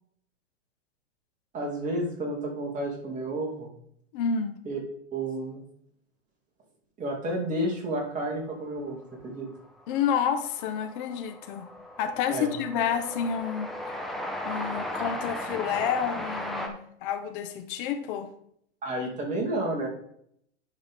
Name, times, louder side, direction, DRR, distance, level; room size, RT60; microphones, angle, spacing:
voice 1, 1.5-3.7 4.7-4.8 5.1-5.6 7.0-9.5 12.3-12.5 18.8-19.9, right 1 dB, 20° right, -2 dB, 2.7 m, -31 dB
voice 2, 4.1-4.6 9.9-11.7 12.0-14.2 14.4-18.3, left 7 dB, 40° left, 7 dB, 1.1 m, -29 dB
Train, 9.3-9.4 9.6-16.7, left 1 dB, ahead, 0.5 m, -36 dB
10.5 x 4.8 x 3.7 m, 0.69 s
hypercardioid pair, 125°, 38 cm